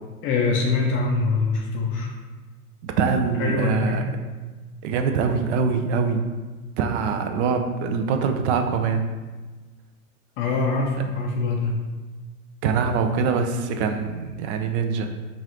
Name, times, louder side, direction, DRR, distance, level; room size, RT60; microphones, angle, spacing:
voice 1, 0.2-2.1 3.4-4.0 10.4-11.7, left 3 dB, 30° left, 0 dB, 0.4 m, -23 dB
voice 2, 2.8-4.0 4.8-6.2 6.8-9.0 12.6-15.1, right 5 dB, 50° right, 6 dB, 0.5 m, -23 dB
5.4 x 2.5 x 3.0 m, 1.3 s
hypercardioid pair, 105°, 44 cm